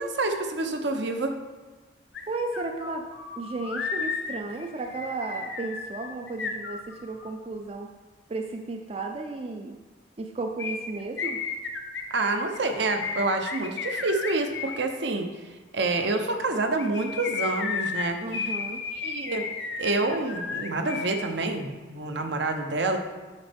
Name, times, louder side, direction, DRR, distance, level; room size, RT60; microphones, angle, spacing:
voice 1, 0.0-1.3 12.1-15.3 15.7-18.2 19.0-19.4 19.8-23.0, right 2 dB, 70° right, 5 dB, 0.7 m, -27 dB
sound 1, 2.1-2.2 2.5-7.3 10.6-14.8 16.6-21.3 21.5-21.6, left 5 dB, 70° left, 0.7 m, -33 dB
voice 2, 2.3-3.1 3.4-7.9 8.3-9.8 10.2-11.4 13.6-13.9 18.2-18.8, right 3 dB, 30° right, 4 dB, 0.3 m, -34 dB
8.0 x 5.2 x 3.5 m, 1.3 s
head